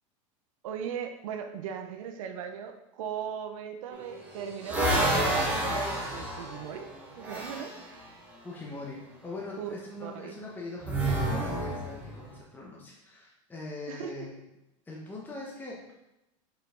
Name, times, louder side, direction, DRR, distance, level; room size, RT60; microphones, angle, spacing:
voice 1, 0.6-6.9 7.2-7.7 9.6-9.7 10.0-10.3 13.9-14.3, right 7 dB, 85° right, 5 dB, 0.7 m, -38 dB
sound 1, 3.9-7.8 10.8-12.3, right 1 dB, 10° right, 1.4 m, -29 dB
voice 2, 8.4-14.3 14.9-15.8, left 3 dB, 10° left, -3 dB, 1.0 m, -42 dB
5.7 x 4.6 x 3.8 m, 0.90 s
supercardioid pair, 140°, 17 cm